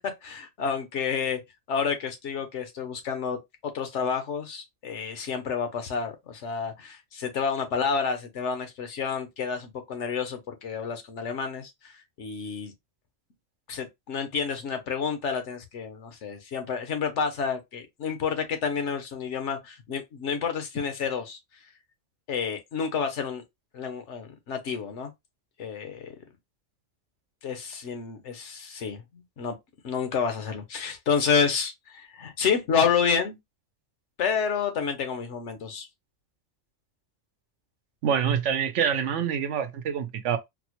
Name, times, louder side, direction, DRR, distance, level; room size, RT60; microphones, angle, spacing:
voice 1, 0.2-1.4 1.7-12.7 13.7-21.4 22.3-23.4 23.7-25.1 25.6-26.2 27.4-29.5 29.8-33.4 34.2-35.9, left 6 dB, 70° left, 1.1 m, -29 dB
voice 2, 38.0-40.4, right 8 dB, 70° right, 0.9 m, -26 dB
4.1 x 2.1 x 2.9 m
omnidirectional pair, 1.3 m